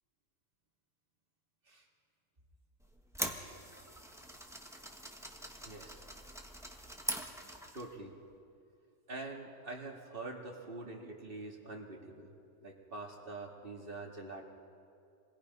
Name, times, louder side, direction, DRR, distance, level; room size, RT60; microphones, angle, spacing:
sound 1, 2.8-7.9, equal, ahead, 1.5 m, -43 dB
voice 1, 5.7-6.0 7.7-8.1 9.1-12.3 12.6-14.4, right 2 dB, 45° right, -1 dB, 2.5 m, -45 dB
27.5 x 22.0 x 5.5 m, 2.5 s
omnidirectional pair, 1.3 m